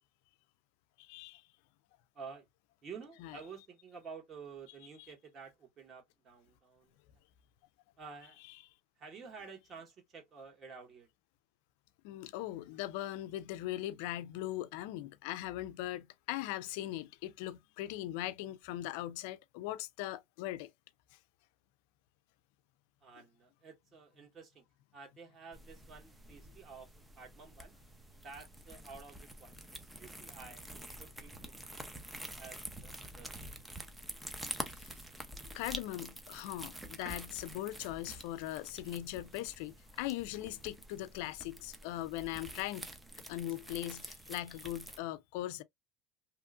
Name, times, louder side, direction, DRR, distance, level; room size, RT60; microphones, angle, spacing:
voice 1, 1.0-1.4 3.2-3.3 12.0-20.7 35.5-42.9 43.3-45.6, left 15 dB, 75° left, 0.4 m, -40 dB
voice 2, 2.1-2.5 2.8-6.9 8.0-8.4 9.0-11.1 23.0-24.6 24.9-26.9 27.2-27.7 28.1-30.7 31.0-33.4, right 5 dB, 40° right, 1.5 m, -51 dB
sound 1, 25.5-45.0, right 1 dB, 10° right, 0.6 m, -48 dB
2.9 x 2.4 x 2.4 m
supercardioid pair, 105°, 0 cm